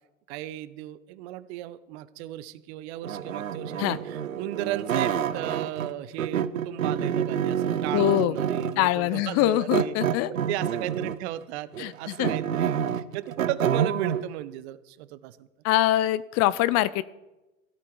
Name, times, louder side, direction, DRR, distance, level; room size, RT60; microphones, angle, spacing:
voice 1, 0.3-9.9 10.3-15.5, right 14 dB, 55° right, 15 dB, 1.0 m, -35 dB
sound 1, 3.0-5.9 6.2-8.9 9.7-11.3 11.7-14.2, right 8 dB, 85° right, 0.8 m, -28 dB
voice 2, 7.9-8.4 8.8-10.3 11.8-12.3 15.6-17.0, left 15 dB, 40° left, 18 dB, 0.6 m, -24 dB
16.0 x 13.0 x 4.7 m, 1.1 s
figure-of-eight pair, 85°, 39 cm